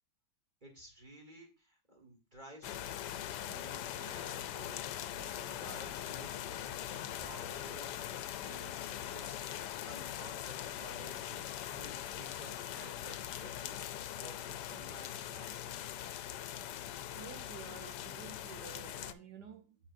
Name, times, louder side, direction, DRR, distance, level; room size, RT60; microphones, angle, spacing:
voice 1, 0.6-3.0 3.5-7.9 8.4-15.8, right 1 dB, 30° right, 1.7 m, -53 dB
sound 1, 2.6-19.1, left 11 dB, 85° left, 1.2 m, -42 dB
voice 2, 17.1-19.8, right 7 dB, 80° right, 1.5 m, -51 dB
8.1 x 7.6 x 2.6 m
omnidirectional pair, 1.8 m